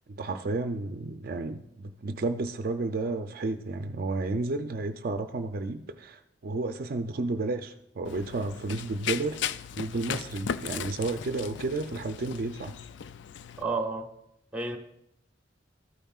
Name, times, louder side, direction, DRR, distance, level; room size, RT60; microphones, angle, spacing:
voice 1, 0.1-12.7, right 3 dB, 55° right, 0.4 m, -32 dB
Run, 8.0-13.6, left 8 dB, 75° left, 0.3 m, -37 dB
voice 2, 13.6-14.1 14.5-14.8, right 3 dB, 5° right, 0.9 m, -30 dB
14.0 x 9.0 x 2.4 m
head